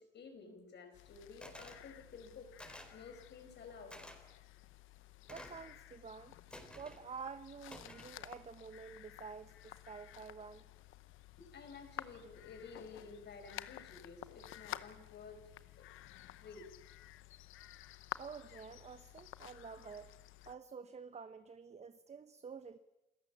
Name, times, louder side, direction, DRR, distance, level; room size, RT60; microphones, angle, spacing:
voice 1, 0.0-2.5 2.9-3.9 11.4-15.4 15.8-15.9 16.4-16.7, left 4 dB, 60° left, 7 dB, 4.9 m, -53 dB
sound 1, 0.9-20.5, left 14 dB, 85° left, 0.8 m, -52 dB
sound 2, 1.4-1.8 2.6-3.0 3.9-4.2 5.3-5.7 6.5-7.0 7.7-8.2, equal, 5° left, 4.4 m, -52 dB
voice 2, 5.3-6.3 6.7-10.6 18.2-20.1 20.5-22.8, right 5 dB, 35° right, 11 dB, 0.9 m, -49 dB
28.0 x 14.5 x 7.2 m, 0.98 s
cardioid pair, 90°, 20 cm